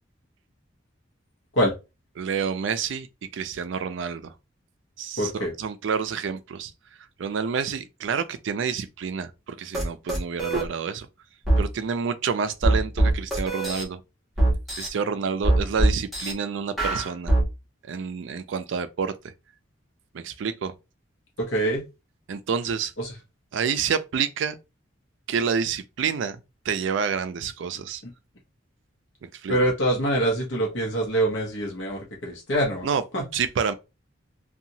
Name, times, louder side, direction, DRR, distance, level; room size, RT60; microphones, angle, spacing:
voice 1, 2.2-3.1 3.3-4.3 5.0-6.7 7.2-11.1 11.6-14.0 14.8-17.3 17.8-19.2 20.1-20.7 22.3-22.9 23.5-24.6 25.3-26.4 26.7-28.0 29.2-29.5 32.8-33.0 33.3-33.7, right 6 dB, 70° right, 0.4 m, -28 dB
voice 2, 5.2-5.5 21.4-21.8 23.0-23.1 29.5-32.9 33.1-33.2, right 1 dB, 70° left, 0.8 m, -24 dB
sound 1, 9.7-9.8 10.1-10.6 11.5-11.6 12.6-13.8 14.4-14.9 15.4-16.3 16.8-17.4, right 1 dB, ahead, 1.0 m, -21 dB
2.8 x 2.3 x 2.7 m
head